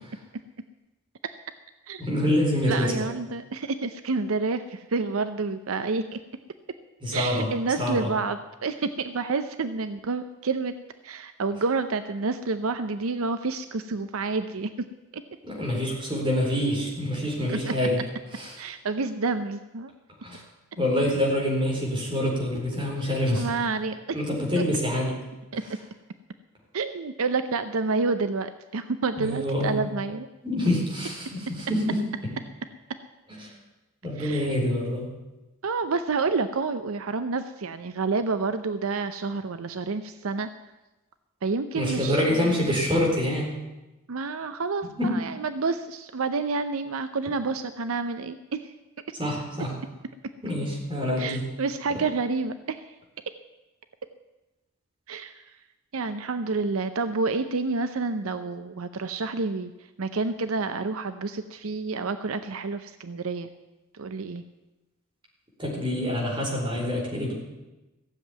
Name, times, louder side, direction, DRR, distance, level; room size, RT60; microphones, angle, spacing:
voice 1, 2.0-3.1 7.0-7.5 7.8-8.1 15.4-18.0 18.3-18.6 20.2-20.4 20.8-23.5 24.1-25.2 29.2-29.8 30.4-32.0 33.4-33.5 34.0-35.1 41.7-43.5 45.0-45.1 49.2-49.7 50.4-51.4 65.6-67.3, left 1 dB, 25° right, -2 dB, 4.2 m, -26 dB
voice 2, 2.7-6.2 7.1-10.7 11.0-14.9 15.1-15.2 17.5-17.7 18.6-19.9 23.3-24.2 24.6-24.7 25.5-25.6 26.7-30.3 34.2-34.5 35.6-40.5 41.4-42.6 44.1-44.9 45.1-48.7 51.2-52.8 55.1-55.4 55.9-59.7 60.0-63.5 63.9-64.4, right 4 dB, 75° right, 10 dB, 0.6 m, -29 dB
15.5 x 7.5 x 9.4 m, 1.0 s
head